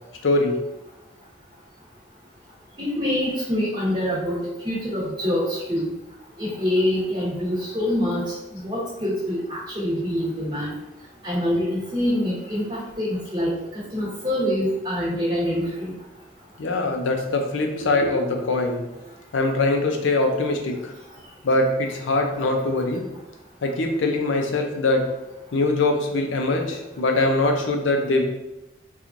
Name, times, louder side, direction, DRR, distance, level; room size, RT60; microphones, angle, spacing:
voice 1, 0.2-0.6 16.6-18.8 19.3-20.9 21.4-23.0 23.6-25.1 25.5-28.2, left 2 dB, 85° left, 3 dB, 0.6 m, -22 dB
voice 2, 2.8-4.4 4.6-5.9 6.4-8.2 8.6-10.7 11.2-13.5 13.9-15.9, left 1 dB, 25° right, -10 dB, 1.0 m, -25 dB
4.4 x 2.4 x 2.5 m, 0.92 s
head